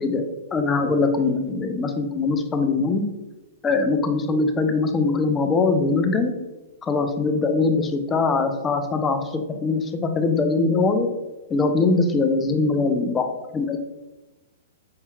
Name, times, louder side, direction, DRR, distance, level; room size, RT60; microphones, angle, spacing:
voice 1, 0.0-3.0 3.6-6.3 6.8-11.1 11.5-13.8, left 3 dB, 20° left, 6 dB, 0.4 m, -22 dB
5.5 x 2.8 x 2.3 m, 1.1 s
hypercardioid pair, 125°, 0 cm